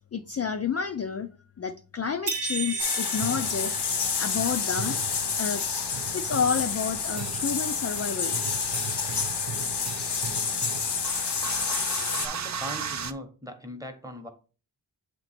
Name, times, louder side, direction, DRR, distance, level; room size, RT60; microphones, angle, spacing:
voice 1, 0.1-1.3 1.6-3.7 4.2-5.0 5.4-5.6 6.1-8.5, left 6 dB, 40° left, 0.4 m, -30 dB
sound 1, 2.3-4.4, right 4 dB, 90° right, 1.0 m, -33 dB
sound 2, 2.8-12.3, left 6 dB, 75° left, 0.8 m, -29 dB
sound 3, 3.1-13.1, right 7 dB, 45° right, 0.4 m, -38 dB
voice 2, 12.1-14.3, equal, 10° right, 0.9 m, -39 dB
7.7 x 2.9 x 4.2 m
wide cardioid pair, 90°, 41 cm